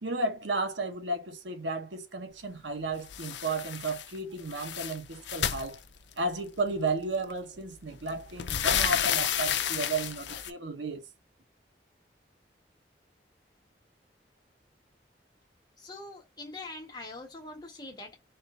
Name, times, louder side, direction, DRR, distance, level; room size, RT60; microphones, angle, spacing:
voice 1, 0.0-5.8 6.2-11.0, right 2 dB, 80° right, 1.1 m, -33 dB
sound 1, 3.1-4.1 4.4-6.4 7.3-7.4 7.8-10.5, left 9 dB, 75° left, 0.6 m, -31 dB
voice 2, 15.8-18.2, left 2 dB, 20° left, 1.6 m, -43 dB
4.5 x 2.5 x 3.7 m
head